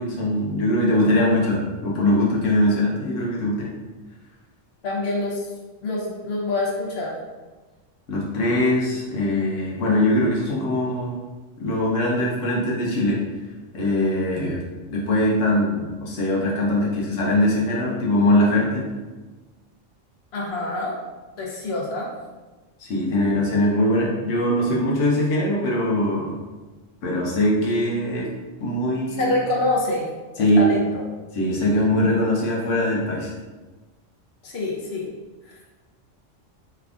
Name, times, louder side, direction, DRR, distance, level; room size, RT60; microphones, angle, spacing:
voice 1, 0.0-3.7 8.1-11.2 11.6-13.2 13.7-14.6 14.9-18.8 22.8-26.4 27.0-28.3 28.6-29.3 30.4-30.8 31.3-33.3, left 1 dB, 90° left, -4 dB, 1.1 m, -21 dB
voice 2, 4.8-5.5 5.8-7.1 20.3-20.9 21.4-22.1 29.1-30.1 30.4-31.0 34.4-35.1 35.5-35.7, left 2 dB, 60° left, -2 dB, 0.9 m, -26 dB
3.4 x 3.4 x 2.4 m, 1.2 s
omnidirectional pair, 1.3 m